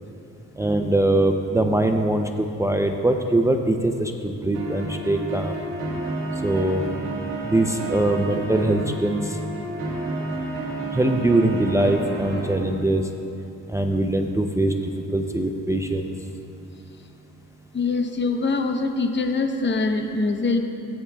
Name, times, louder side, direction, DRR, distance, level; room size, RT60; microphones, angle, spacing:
voice 1, 0.6-5.5 6.4-6.8 7.4-9.4 10.9-13.1 13.7-14.7 15.1-16.1, right 1 dB, 10° right, 4 dB, 0.5 m, -22 dB
sound 1, 4.5-12.6, right 2 dB, 90° right, 2.0 m, -30 dB
voice 2, 17.7-20.6, left 3 dB, 40° left, 5 dB, 0.9 m, -23 dB
17.0 x 9.7 x 2.3 m, 2.8 s
cardioid pair, 90°, 30 cm